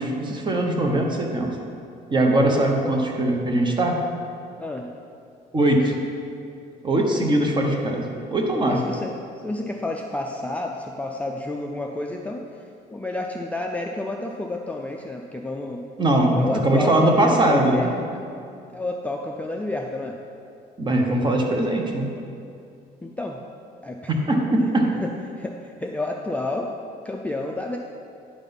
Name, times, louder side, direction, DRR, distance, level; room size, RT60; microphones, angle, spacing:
voice 1, 0.0-1.6 2.1-4.0 5.5-6.0 6.8-8.8 16.0-17.9 20.8-22.1 24.1-25.0, right 1 dB, 25° right, 2 dB, 1.1 m, -21 dB
voice 2, 4.6-4.9 8.6-12.6 12.9-15.8 16.4-17.9 18.7-20.2 23.0-23.4 23.8-24.1 25.0-25.1 25.4-26.7 27.0-27.8, left 2 dB, 10° left, 1 dB, 0.4 m, -30 dB
10.0 x 3.9 x 5.4 m, 2.5 s
cardioid pair, 110°, 17 cm